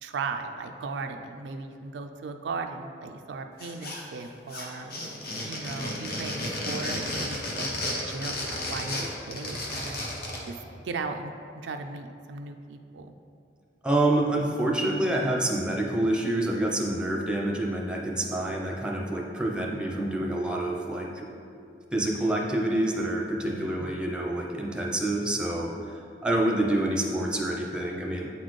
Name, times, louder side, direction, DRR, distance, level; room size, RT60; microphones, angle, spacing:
voice 1, 0.0-4.9 5.4-10.0 10.5-11.3 11.6-13.1 19.6-20.3 23.4-24.1, right 4 dB, 80° right, 6 dB, 0.4 m, -37 dB
sound 1, 3.6-4.2 4.5-10.5, left 1 dB, 60° left, 1.0 m, -33 dB
voice 2, 13.8-21.3 21.9-28.3, right 1 dB, 5° right, -1 dB, 0.6 m, -27 dB
8.1 x 4.2 x 3.1 m, 2.6 s
head